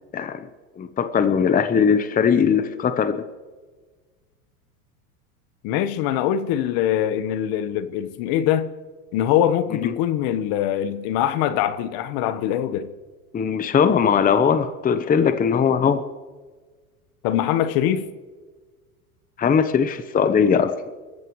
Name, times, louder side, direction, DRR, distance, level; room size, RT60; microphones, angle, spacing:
voice 1, 0.1-0.5 0.8-3.3 9.7-9.9 13.3-16.0 19.4-20.7, left 7 dB, 20° left, 10 dB, 0.9 m, -20 dB
voice 2, 5.6-8.7 9.1-12.9 17.2-18.1, left 10 dB, 55° left, 12 dB, 1.3 m, -23 dB
27.0 x 14.5 x 3.2 m, 1.4 s
hypercardioid pair, 105°, 45 cm